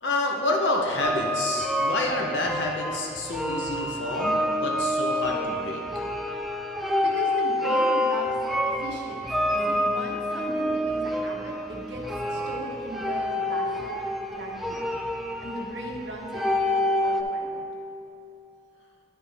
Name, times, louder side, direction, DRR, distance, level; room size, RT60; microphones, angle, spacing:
voice 1, 0.0-5.8, left 2 dB, 90° left, 0 dB, 0.9 m, -28 dB
sound 1, 1.0-17.2, left 1 dB, ahead, 0.3 m, -27 dB
voice 2, 7.0-14.9 15.4-17.6, right 1 dB, 85° right, 0 dB, 1.2 m, -38 dB
10.0 x 5.5 x 3.5 m, 2.7 s
head